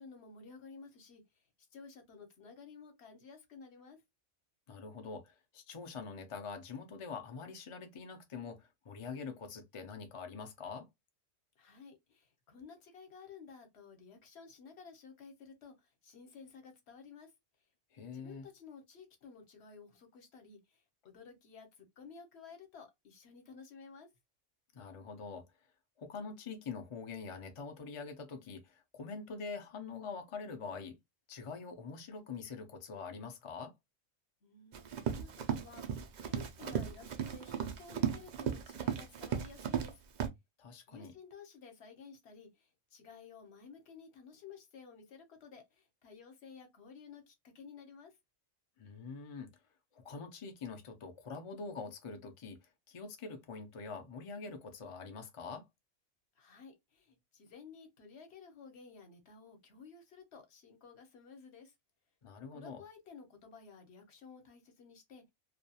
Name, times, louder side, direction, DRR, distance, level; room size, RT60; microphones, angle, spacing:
voice 1, 0.0-1.4 1.7-4.0 11.6-17.3 18.1-24.1 34.4-40.0 40.9-48.2 56.4-61.7 62.5-65.3, left 5 dB, 60° left, 1.0 m, -54 dB
voice 2, 4.7-10.9 17.9-18.4 24.7-25.5 26.0-31.0 31.3-33.7 40.6-41.1 48.8-49.5 49.9-55.7 62.2-62.8, left 5 dB, 45° left, 0.4 m, -45 dB
Run, 34.7-39.9 40.2-40.3, right 8 dB, 75° right, 0.4 m, -36 dB
2.4 x 2.3 x 2.7 m
omnidirectional pair, 1.3 m